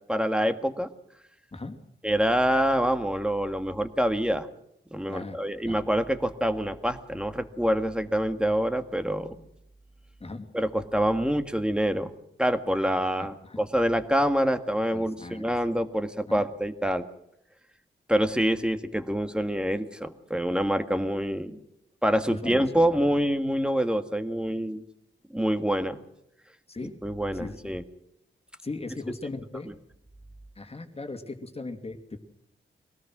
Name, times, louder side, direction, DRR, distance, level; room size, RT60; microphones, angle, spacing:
voice 1, 0.1-0.9 2.0-4.5 4.9-9.3 10.5-12.1 12.4-17.1 18.1-21.6 22.0-24.8 25.3-26.0 27.0-27.8, equal, 5° right, 8 dB, 1.8 m, -26 dB
voice 2, 13.2-13.6 14.9-15.4 16.3-16.4 22.3-23.0 26.7-27.0 27.3-27.7 28.6-29.7 30.6-32.2, left 3 dB, 30° left, 6 dB, 2.7 m, -38 dB
24.0 x 18.0 x 6.2 m, 0.79 s
wide cardioid pair, 90°, 21 cm